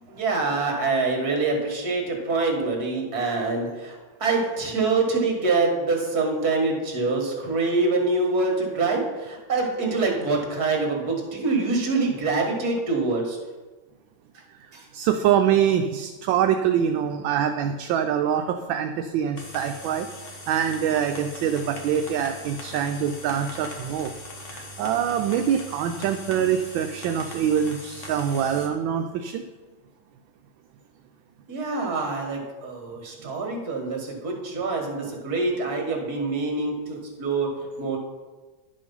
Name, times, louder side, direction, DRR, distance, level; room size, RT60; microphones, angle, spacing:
voice 1, 0.1-13.4 14.7-14.8 31.5-38.0, right 3 dB, 50° right, 1 dB, 2.1 m, -25 dB
voice 2, 14.9-20.1 20.5-24.1 24.5-29.4, right 9 dB, 80° right, 5 dB, 1.3 m, -24 dB
sound 1, 19.4-28.7, left 1 dB, 40° left, 1.4 m, -40 dB
11.0 x 5.2 x 5.4 m, 1.3 s
omnidirectional pair, 2.2 m